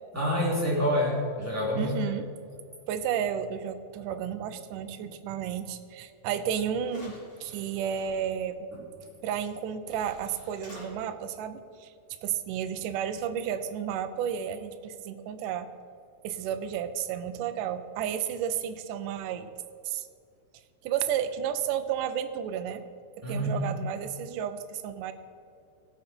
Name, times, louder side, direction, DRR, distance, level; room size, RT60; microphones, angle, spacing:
voice 1, 0.1-1.9 8.7-8.8 23.2-23.7, equal, 5° right, -6 dB, 2.3 m, -27 dB
voice 2, 1.8-2.2 2.9-8.7 9.2-11.9 12.2-15.7 16.2-19.5 19.9-20.1 20.8-22.8 23.3-25.1, right 9 dB, 80° right, 9 dB, 1.9 m, -32 dB
sound 1, 6.3-6.4 6.8-8.1 9.5-9.6 9.9-10.9, left 1 dB, 30° left, 3.8 m, -49 dB
16.5 x 7.3 x 4.4 m, 2.4 s
omnidirectional pair, 4.5 m